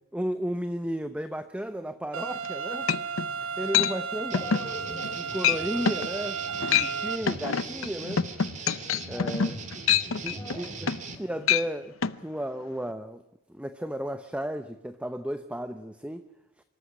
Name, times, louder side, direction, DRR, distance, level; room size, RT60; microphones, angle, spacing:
voice 1, 0.1-3.1 3.4-4.5 5.1-8.2 9.1-9.6 10.2-11.9 12.2-13.2 13.5-16.3, equal, 5° right, 10 dB, 0.7 m, -34 dB
sound 1, 2.1-7.2, right 6 dB, 70° right, 1.3 m, -34 dB
sound 2, 2.4-2.5 2.9-3.3 3.7-3.9 4.3-4.7 5.0-5.2 5.4-5.6 5.9-6.1 6.5-6.9 7.3-11.2 11.4-11.7 12.0-12.2, left 8 dB, 70° left, 0.8 m, -25 dB
voice 2, 4.3-5.2 5.6-6.8 9.1-10.8 11.1-11.3, left 1 dB, 10° left, 1 dB, 5.7 m, -46 dB
sound 3, 4.3-11.2, right 4 dB, 35° right, 2.4 m, -40 dB
25.0 x 13.5 x 9.8 m, 0.83 s
head